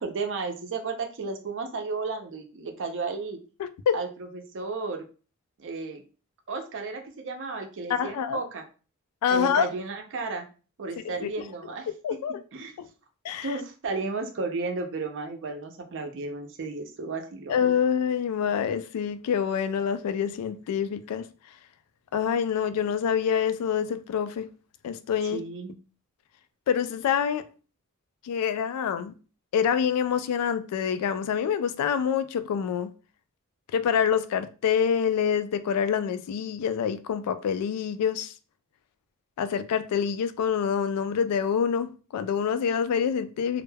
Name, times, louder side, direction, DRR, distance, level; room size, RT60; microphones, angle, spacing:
voice 1, 0.0-3.4 3.9-5.1 5.6-6.0 6.5-8.7 9.3-10.5 10.8-11.9 12.5-12.7 13.4-17.7 25.2-25.8, right 3 dB, 55° right, 0.5 m, -33 dB
voice 2, 3.6-4.0 7.9-8.4 9.2-9.7 11.0-11.3 12.0-12.4 12.8-12.9 13.2-13.5 17.5-21.3 22.1-24.5 24.8-25.4 26.7-27.4 28.2-29.1 29.5-32.9 33.7-38.3 39.4-43.6, left 7 dB, 90° left, 0.3 m, -26 dB
2.2 x 2.0 x 3.2 m
head